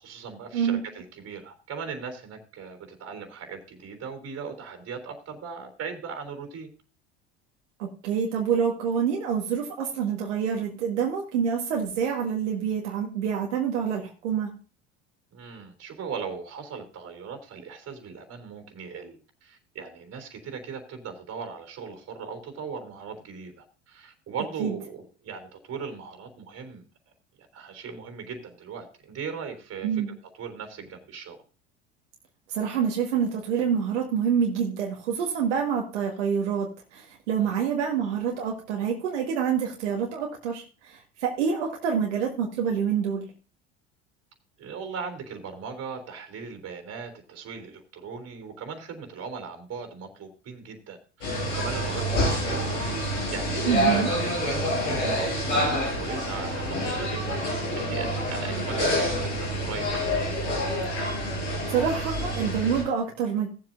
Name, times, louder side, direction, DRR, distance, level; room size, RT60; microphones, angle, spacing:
voice 1, 0.0-6.7 15.3-26.8 27.5-30.0 30.4-31.4 37.3-37.5 44.6-52.7 53.0-57.4 57.8-60.1, right 5 dB, 45° right, 6 dB, 3.4 m, -38 dB
voice 2, 7.8-14.5 24.6-24.7 29.8-30.1 32.5-43.3 53.7-54.1 61.7-63.5, right 7 dB, 75° right, 0 dB, 1.7 m, -27 dB
sound 1, 51.2-62.8, equal, 85° left, 5.1 m, -27 dB
17.5 x 7.6 x 2.6 m, 0.36 s
hypercardioid pair, 70°, 36 cm